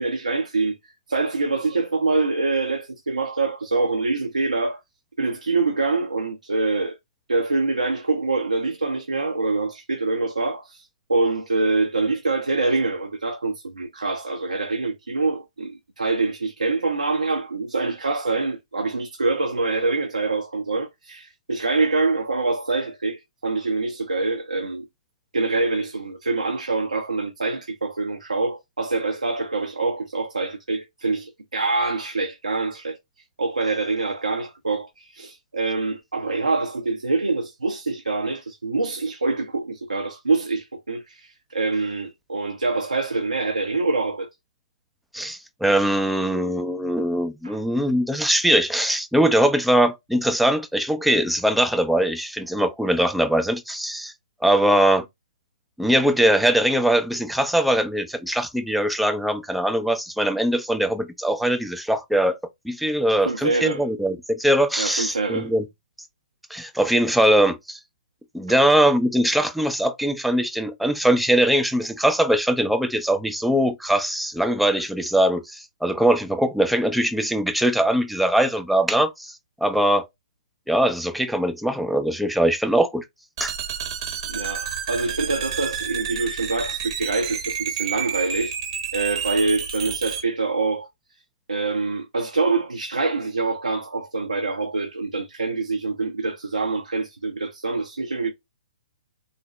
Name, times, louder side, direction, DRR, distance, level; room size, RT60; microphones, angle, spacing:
voice 1, 0.0-4.8 5.2-7.0 7.3-24.9 25.3-33.0 33.4-44.3 47.4-47.6 63.2-63.8 64.8-65.5 68.5-68.6 84.3-88.5 88.9-90.9 91.5-98.3, right 3 dB, 80° right, 0.6 m, -25 dB
voice 2, 45.1-54.1 54.4-55.1 55.8-62.4 62.6-65.6 66.5-67.8 68.3-80.1 80.7-83.0 83.4-83.5, right 1 dB, ahead, 0.4 m, -21 dB
sound 1, 83.4-90.2, right 8 dB, 40° right, 0.8 m, -30 dB
4.1 x 2.0 x 3.0 m
figure-of-eight pair, 125°, 4 cm